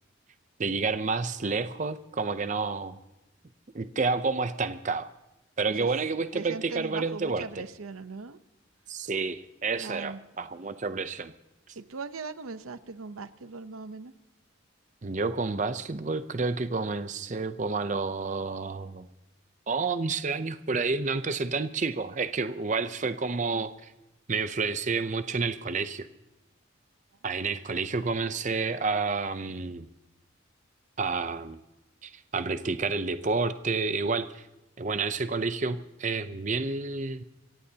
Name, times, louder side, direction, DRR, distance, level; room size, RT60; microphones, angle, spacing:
voice 1, 0.6-3.0 3.7-5.1 5.6-7.7 8.9-11.3 15.0-19.1 19.7-23.9 24.3-26.1 27.2-29.9 31.0-31.6 32.0-34.4 34.8-37.2, right 4 dB, 35° right, 11 dB, 0.6 m, -30 dB
voice 2, 6.3-8.4 9.8-10.2 11.8-14.1 23.5-23.6, right 4 dB, 90° right, 12 dB, 0.8 m, -39 dB
26.5 x 15.5 x 2.8 m, 1.0 s
head